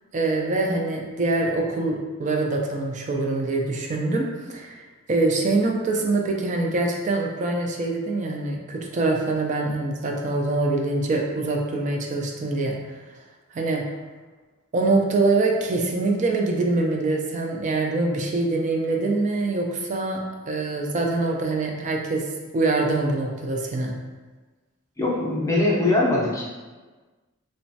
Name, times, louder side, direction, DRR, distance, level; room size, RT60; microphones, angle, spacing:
voice 1, 0.1-4.2 4.5-4.8 5.1-12.8 13.5-13.8 14.7-20.2 20.5-22.2 22.5-23.9, right 2 dB, 35° right, 1 dB, 0.3 m, -24 dB
voice 2, 25.0-26.4, left 2 dB, 15° left, -6 dB, 0.5 m, -21 dB
3.0 x 2.1 x 2.6 m, 1.3 s
head